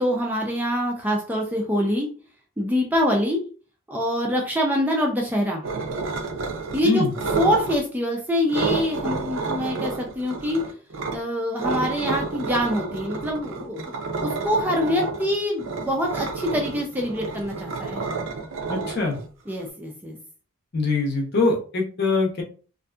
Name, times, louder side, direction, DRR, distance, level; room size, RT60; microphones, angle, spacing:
voice 1, 0.0-2.1 2.6-3.4 3.9-5.6 6.7-7.0 7.4-10.6 11.1-13.9 14.2-18.0 19.5-20.2, equal, 10° right, 0 dB, 0.4 m, -25 dB
sound 1, 5.6-6.8 7.1-7.8 8.5-11.2 11.6-19.6, right 4 dB, 70° right, 0.5 m, -30 dB
voice 2, 18.7-19.2 20.7-22.4, left 3 dB, 50° left, 0 dB, 0.8 m, -23 dB
2.6 x 2.5 x 2.2 m, 0.38 s
head